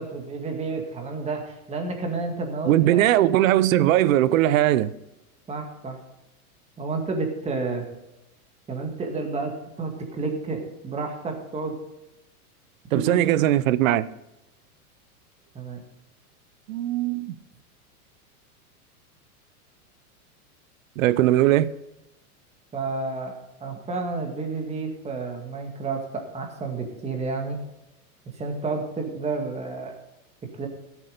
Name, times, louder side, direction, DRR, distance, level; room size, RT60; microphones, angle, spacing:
voice 1, 0.0-3.0 5.5-6.0 6.8-7.8 8.7-11.7 12.9-13.2 15.5-15.8 21.2-21.4 22.7-27.6 28.4-29.9 30.6-30.7, right 3 dB, 15° right, 2.0 m, -30 dB
voice 2, 2.7-4.9 12.9-14.1 16.7-17.3 21.0-21.7, right 13 dB, 60° right, 0.7 m, -20 dB
14.0 x 8.3 x 5.1 m
hypercardioid pair, 135°, 44 cm